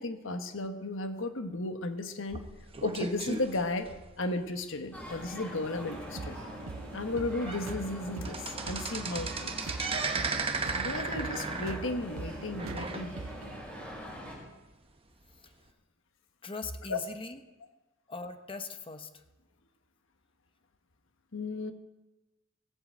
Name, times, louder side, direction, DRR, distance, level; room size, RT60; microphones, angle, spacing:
voice 1, 0.0-2.4 2.8-3.9 4.2-6.4 6.9-9.7 10.7-13.2 16.9-17.0 21.3-21.7, left 2 dB, 65° left, 7 dB, 1.3 m, -34 dB
sound 1, 2.3-4.5 5.0-5.2 5.5-5.6 6.2-6.3 6.9-7.0 7.3-7.7 8.0-13.5 13.8-13.9 14.7-14.8, right 4 dB, 25° right, 1.0 m, -36 dB
sound 2, 4.9-14.3, equal, 5° left, 4.9 m, -43 dB
sound 3, 5.9-13.6, right 3 dB, 80° right, 0.6 m, -43 dB
voice 2, 16.4-17.4 18.1-19.2, left 4 dB, 25° left, 7 dB, 1.0 m, -41 dB
16.5 x 7.8 x 7.9 m, 1.1 s
head